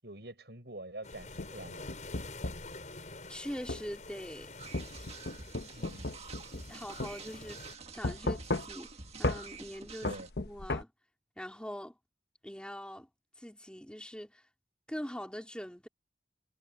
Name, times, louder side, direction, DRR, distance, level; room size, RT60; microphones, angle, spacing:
voice 1, 0.0-1.8 5.7-6.1 10.0-10.3, right 1 dB, 70° right, 7.8 m, -46 dB
sound 1, 1.0-7.8, left 3 dB, 45° left, 7.0 m, -48 dB
sound 2, 1.2-2.7 3.7-3.9 4.7-6.7 7.0-7.1 8.0-8.9 9.2-9.4 10.0-10.8, left 2 dB, 65° left, 1.1 m, -34 dB
voice 2, 3.3-4.5 6.7-8.9 9.2-10.1 10.4-10.9 11.4-11.9 12.4-13.1 13.4-14.4 14.9-15.9, equal, 5° left, 3.7 m, -42 dB
sound 3, 4.6-10.3, right 4 dB, 35° right, 1.8 m, -48 dB
head